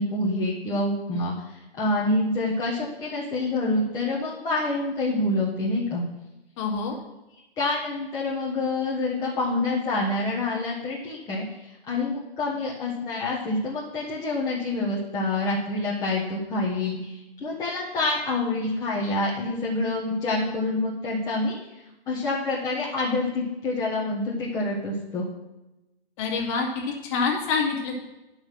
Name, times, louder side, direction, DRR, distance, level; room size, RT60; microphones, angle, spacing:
voice 1, 0.0-6.0 7.6-21.5 22.1-25.3, left 2 dB, 10° left, -6 dB, 1.3 m, -27 dB
voice 2, 6.6-6.9 26.2-28.1, left 4 dB, 30° left, 0 dB, 2.2 m, -26 dB
10.5 x 5.7 x 6.0 m, 0.99 s
figure-of-eight pair, 130°, 31 cm